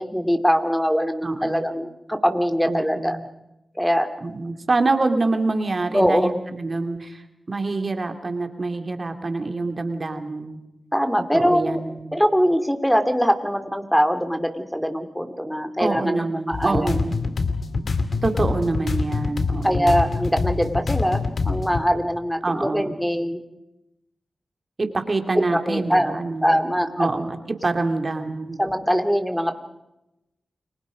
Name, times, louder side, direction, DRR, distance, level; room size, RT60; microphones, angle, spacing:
voice 1, 0.0-3.2 3.7-4.1 5.9-6.3 10.9-11.8 12.1-17.0 19.6-23.4 25.3-26.1 26.4-26.9 28.6-29.5, equal, 5° left, 8 dB, 2.8 m, -22 dB
voice 2, 1.2-1.6 2.6-3.2 4.2-10.6 11.3-12.1 15.8-17.2 18.2-20.0 22.4-22.9 24.8-26.6 27.0-27.4 27.6-28.6, right 3 dB, 50° right, 6 dB, 2.8 m, -26 dB
sound 1, 16.5-21.8, left 4 dB, 75° left, 2.4 m, -25 dB
30.0 x 22.0 x 5.3 m, 0.90 s
cardioid pair, 40°, 0 cm